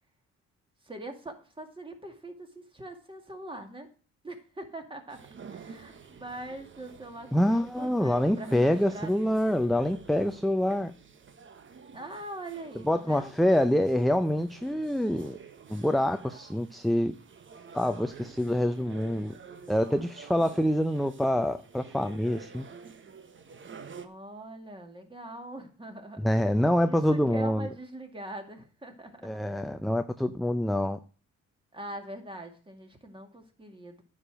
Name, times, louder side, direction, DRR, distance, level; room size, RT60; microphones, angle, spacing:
voice 1, 0.8-3.9 4.2-5.2 5.5-9.6 11.9-13.5 24.0-26.3 26.8-29.3 31.7-34.0, right 1 dB, 15° right, 4 dB, 2.3 m, -42 dB
sound 1, 5.1-24.1, right 6 dB, 40° right, 1.1 m, -50 dB
voice 2, 7.3-10.9 12.8-15.4 15.7-17.1 17.7-19.4 19.7-22.7 26.2-27.7 29.2-31.0, left 1 dB, ahead, 9 dB, 0.5 m, -26 dB
9.7 x 5.2 x 7.6 m, 0.38 s
cardioid pair, 90°, 30 cm